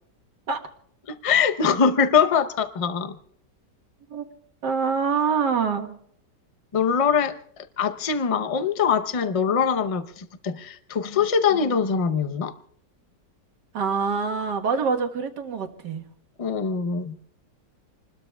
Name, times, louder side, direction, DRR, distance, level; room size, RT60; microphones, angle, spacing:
voice 1, 1.1-3.2 6.7-12.5 16.4-17.2, left 6 dB, 40° left, 10 dB, 0.5 m, -23 dB
voice 2, 4.6-6.0 13.7-16.1, right 5 dB, 75° right, 4 dB, 2.0 m, -25 dB
27.5 x 20.5 x 2.3 m, 0.65 s
omnidirectional pair, 1.8 m